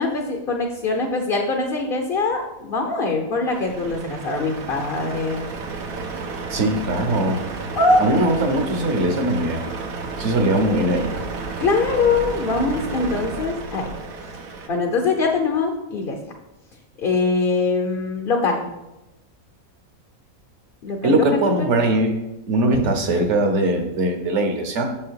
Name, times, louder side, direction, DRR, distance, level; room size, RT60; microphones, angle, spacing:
voice 1, 0.0-5.5 7.8-8.1 9.3-9.4 11.6-13.9 14.7-16.2 17.0-18.7 20.8-21.7 22.7-22.9, left 3 dB, 45° left, 2 dB, 0.8 m, -22 dB
Truck, 3.5-14.7, right 4 dB, 80° right, 1.3 m, -32 dB
voice 2, 6.5-7.4 8.0-9.7 10.2-11.1 21.0-22.2 22.5-24.9, right 1 dB, 55° right, 5 dB, 1.3 m, -20 dB
7.3 x 5.6 x 4.6 m, 0.96 s
omnidirectional pair, 1.5 m